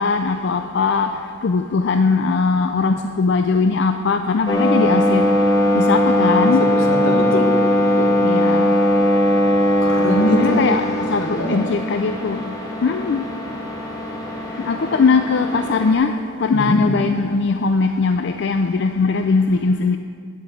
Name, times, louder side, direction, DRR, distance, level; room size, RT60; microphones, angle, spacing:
voice 1, 0.0-5.3 5.7-6.6 8.2-8.8 10.3-12.6 12.8-13.2 14.6-16.1 16.4-20.0, left 4 dB, 60° left, 7 dB, 0.4 m, -20 dB
sound 1, 4.5-15.9, equal, 20° left, 1.6 m, -19 dB
voice 2, 6.7-7.5 7.8-8.1 9.8-10.7 11.2-11.6 16.5-16.8, left 1 dB, 85° left, 2 dB, 1.8 m, -22 dB
9.8 x 8.4 x 7.6 m, 2.2 s
head